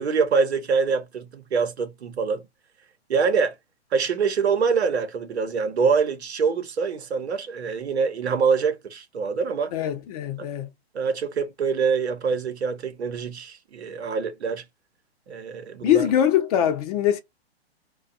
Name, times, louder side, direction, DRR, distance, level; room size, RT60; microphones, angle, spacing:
voice 1, 0.0-2.4 3.1-3.5 3.9-9.7 10.4-10.5 10.9-14.6 15.3-16.1, right 5 dB, 85° right, 0.8 m, -25 dB
voice 2, 9.7-10.7 15.8-17.2, left 10 dB, 35° left, 0.7 m, -22 dB
2.4 x 2.2 x 2.5 m
hypercardioid pair, 135°, 32 cm